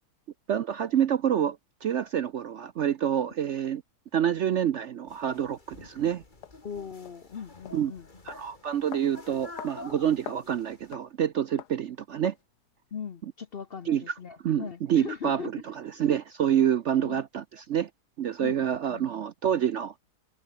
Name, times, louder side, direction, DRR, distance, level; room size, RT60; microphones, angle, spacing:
voice 1, 0.5-3.8 4.1-6.2 7.7-7.9 8.2-12.3 13.9-14.1 14.4-17.9 18.2-19.9, right 9 dB, 60° right, 0.8 m, -27 dB
sound 1, 5.1-10.9, left 3 dB, 30° left, 2.5 m, -48 dB
sound 2, 5.3-5.4 6.4-6.5 7.0-7.2 7.6-7.8 8.3-8.4 8.9-9.1 9.6-9.8 10.0-10.5 10.9-11.1 11.6-11.8 12.2-12.4, left 10 dB, 80° left, 1.6 m, -43 dB
voice 2, 6.6-8.1 12.9-15.5 16.9-17.2 18.4-18.6 18.9-19.0, left 7 dB, 45° left, 0.8 m, -39 dB
omnidirectional pair, 1.7 m